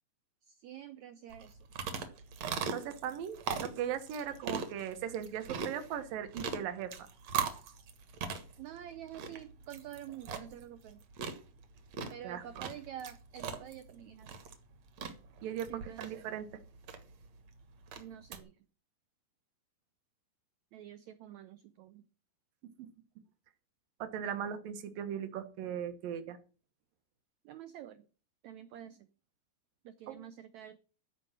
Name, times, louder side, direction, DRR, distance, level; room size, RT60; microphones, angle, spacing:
voice 1, 0.4-1.6 8.6-11.0 12.1-14.4 15.7-16.2 18.0-18.5 20.7-22.0 27.4-28.1 28.4-29.1 29.8-30.8, right 11 dB, 90° right, 12 dB, 1.6 m, -48 dB
sound 1, 1.3-18.4, right 6 dB, 55° right, 2.3 m, -41 dB
voice 2, 2.7-7.0 12.2-12.7 15.4-16.5 22.8-22.9 24.0-26.4 30.1-30.2, right 9 dB, 70° right, 10 dB, 2.9 m, -38 dB
13.5 x 5.3 x 9.0 m, 0.38 s
omnidirectional pair, 4.2 m